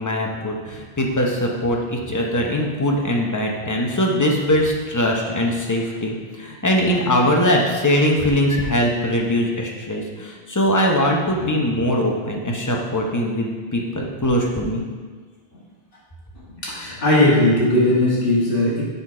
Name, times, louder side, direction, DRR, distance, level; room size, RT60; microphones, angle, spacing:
voice 1, 0.0-14.8, equal, 20° left, 0 dB, 0.7 m, -21 dB
voice 2, 16.5-18.8, left 1 dB, 60° left, -7 dB, 2.0 m, -18 dB
6.8 x 4.1 x 4.9 m, 1.5 s
omnidirectional pair, 1.1 m